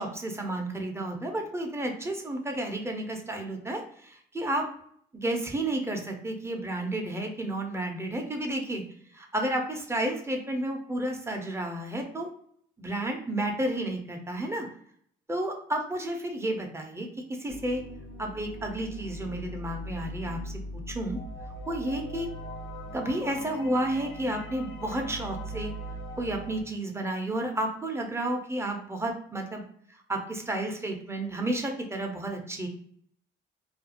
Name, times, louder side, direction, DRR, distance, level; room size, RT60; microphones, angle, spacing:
voice 1, 0.0-4.7 5.1-8.8 9.1-12.3 12.8-14.7 15.3-17.8 18.2-21.2 21.7-22.3 22.9-25.7 26.2-29.6 30.1-32.7, right 1 dB, 15° right, 2 dB, 0.6 m, -31 dB
sound 1, 17.5-26.6, equal, 80° left, 0.6 m, -40 dB
2.5 x 2.3 x 2.7 m, 0.64 s
cardioid pair, 90°, 20 cm